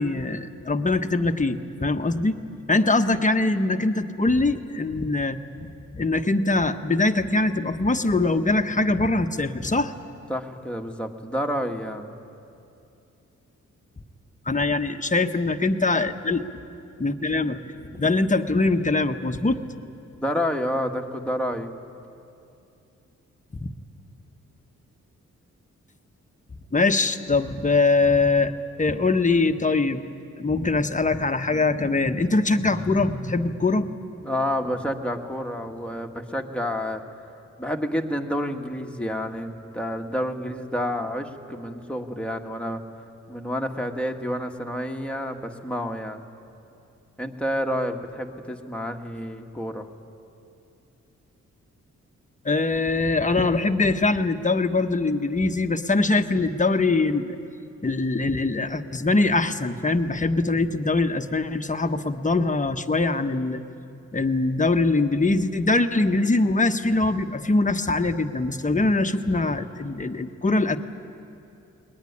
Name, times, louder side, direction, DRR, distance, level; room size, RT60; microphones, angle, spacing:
voice 1, 0.0-2.4 2.7-5.4 5.9-9.9 14.5-16.4 17.0-17.6 18.0-19.6 23.5-23.7 26.7-28.5 28.8-30.1 30.4-33.9 52.4-57.4 57.8-63.6 64.1-70.8, left 3 dB, 25° left, 7 dB, 1.3 m, -22 dB
voice 2, 10.3-12.1 17.8-18.0 20.2-21.7 34.2-37.0 37.6-42.8 43.3-46.2 47.2-49.9, equal, 5° left, 2 dB, 1.9 m, -29 dB
21.5 x 19.5 x 9.9 m, 2.6 s
cardioid pair, 75°, 30 cm